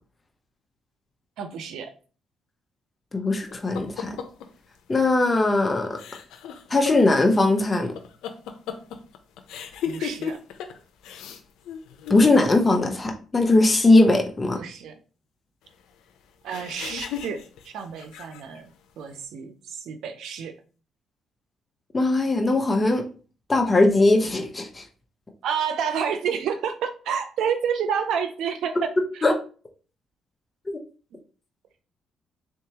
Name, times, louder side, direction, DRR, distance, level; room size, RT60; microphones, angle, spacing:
voice 1, 1.4-1.9 9.8-10.4 14.5-14.9 16.4-20.5 25.4-29.2, right 7 dB, 80° right, 8 dB, 0.4 m, -29 dB
voice 2, 3.1-4.2 4.9-6.0 6.7-7.9 12.1-14.6 21.9-23.0 23.5-24.8 29.2-29.3 30.7-30.8, left 2 dB, 25° left, 4 dB, 0.7 m, -20 dB
sound 1, 3.5-4.5 5.4-5.6 5.9-10.8 11.0-11.4 11.6-12.6 16.5-18.6, left 8 dB, 90° left, 0.5 m, -35 dB
4.0 x 3.4 x 2.8 m, 0.38 s
cardioid pair, 90°, 0 cm